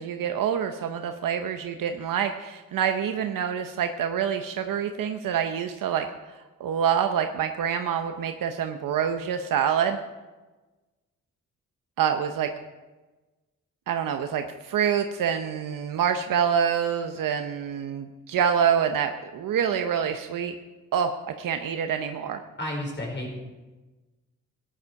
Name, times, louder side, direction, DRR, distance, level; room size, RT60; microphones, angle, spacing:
voice 1, 0.0-6.1 6.6-10.0 12.0-12.5 13.9-20.5 20.9-21.1 21.4-22.4, right 8 dB, 85° right, 6 dB, 0.8 m, -26 dB
voice 2, 22.6-23.4, left 1 dB, 35° left, -1 dB, 5.2 m, -32 dB
15.5 x 10.5 x 4.7 m, 1.2 s
cardioid pair, 85°, 32 cm